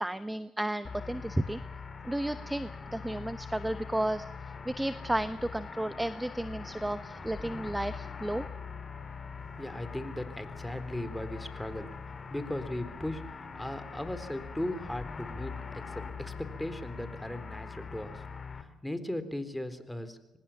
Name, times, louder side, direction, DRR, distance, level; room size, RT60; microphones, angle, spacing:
voice 1, 0.0-1.6 2.0-4.2 4.6-8.4, right 1 dB, 10° right, 12 dB, 1.1 m, -33 dB
sound 1, 0.8-18.6, left 5 dB, 40° left, 3.1 m, -42 dB
sound 2, 3.5-16.5, left 5 dB, 85° left, 7.3 m, -56 dB
voice 2, 9.5-11.9 12.3-18.2 18.6-20.4, left 1 dB, 5° left, 11 dB, 3.9 m, -38 dB
24.5 x 20.0 x 7.3 m, 0.93 s
supercardioid pair, 65°, 0 cm